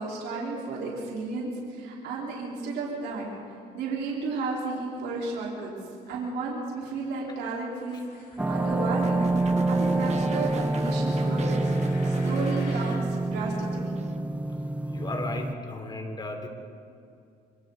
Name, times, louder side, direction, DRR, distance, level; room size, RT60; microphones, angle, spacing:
voice 1, 0.0-3.2 3.7-5.7 6.1-9.3 9.7-11.7 12.0-14.0, right 3 dB, 80° right, -4 dB, 4.4 m, -33 dB
sound 1, 7.7-13.0, left 4 dB, 55° left, 5.5 m, -49 dB
sound 2, 8.4-15.5, right 2 dB, 10° right, 0.8 m, -27 dB
sound 3, 9.0-13.5 13.7-14.2, right 6 dB, 40° right, 1.3 m, -42 dB
voice 2, 14.9-16.5, left 2 dB, 25° left, 3 dB, 3.7 m, -34 dB
26.0 x 25.0 x 4.1 m, 2.4 s
cardioid pair, 110°, 17 cm